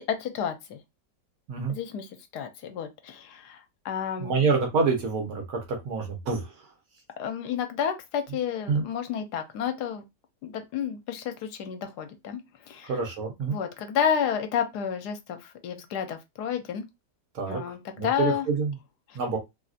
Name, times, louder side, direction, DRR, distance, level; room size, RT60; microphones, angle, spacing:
voice 1, 0.1-0.8 1.7-4.4 7.2-10.0 10.4-12.4 12.7-12.9 13.5-16.8 17.5-18.5, left 8 dB, 75° left, 1.2 m, -31 dB
voice 2, 4.2-5.6 5.8-6.5 8.7-8.8 12.8-13.6 17.3-17.6 18.0-18.7 19.1-19.4, right 4 dB, 65° right, 1.5 m, -26 dB
3.3 x 2.6 x 2.4 m
omnidirectional pair, 1.8 m